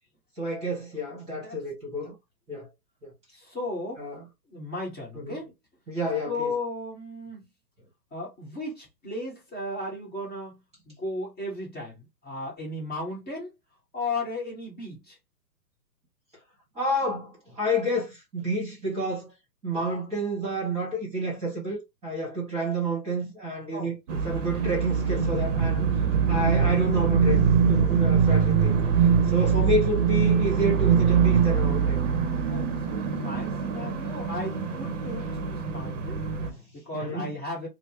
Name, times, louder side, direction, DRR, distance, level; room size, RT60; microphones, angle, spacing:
voice 1, 0.4-2.2 2.5-2.7 3.0-3.1 4.0-4.2 5.1-5.4 5.9-6.5 16.7-19.3 19.6-25.8 26.1-27.4 27.7-32.0 33.4-33.5 36.4-36.6 36.9-37.3, right 1 dB, 15° right, 1.4 m, -29 dB
voice 2, 3.3-4.0 4.5-5.5 6.3-7.5 8.1-10.6 10.9-13.5 13.9-15.2 23.7-23.9 28.6-28.9 32.5-36.3 36.7-37.7, left 2 dB, 20° left, 1.3 m, -35 dB
sound 1, 24.1-36.5, right 6 dB, 50° right, 0.8 m, -23 dB
3.2 x 2.1 x 2.9 m
hypercardioid pair, 140°, 49 cm